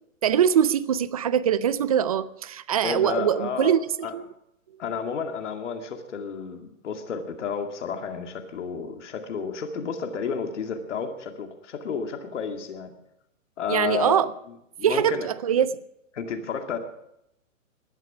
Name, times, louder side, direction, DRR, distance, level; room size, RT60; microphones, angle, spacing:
voice 1, 0.2-3.8 4.1-4.2 13.7-14.3 14.8-15.8, right 9 dB, 30° right, 0.4 m, -22 dB
voice 2, 2.8-4.1 4.8-12.9 13.6-14.2 14.8-15.3 16.1-16.8, left 6 dB, 60° left, 2.3 m, -31 dB
19.0 x 12.0 x 4.9 m
hypercardioid pair, 150°, 40 cm